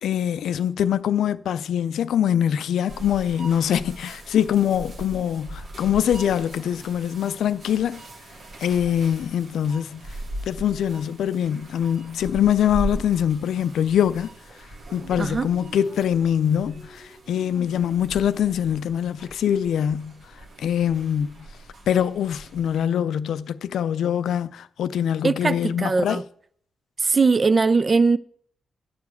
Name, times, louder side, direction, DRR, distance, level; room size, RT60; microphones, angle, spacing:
voice 1, 0.0-8.0 8.6-10.0 10.5-14.3 14.9-20.1 20.6-21.5 21.9-26.2, left 9 dB, 80° left, 0.3 m, -23 dB
sound 1, 2.9-22.8, right 1 dB, 65° right, 1.7 m, -39 dB
voice 2, 15.2-15.5 25.2-26.2 27.0-28.2, right 4 dB, 45° right, 0.4 m, -20 dB
10.0 x 4.7 x 7.0 m
supercardioid pair, 50°, 0 cm